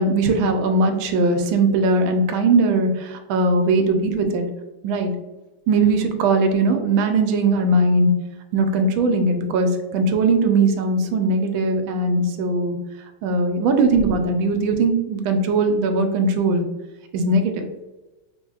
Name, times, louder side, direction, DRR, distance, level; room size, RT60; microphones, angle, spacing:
voice 1, 0.0-4.5 4.8-5.1 5.7-8.1 8.5-12.8 13.2-16.7 17.1-17.7, right 2 dB, 80° right, 5 dB, 1.3 m, -19 dB
4.7 x 2.6 x 2.3 m, 1.1 s
omnidirectional pair, 2.2 m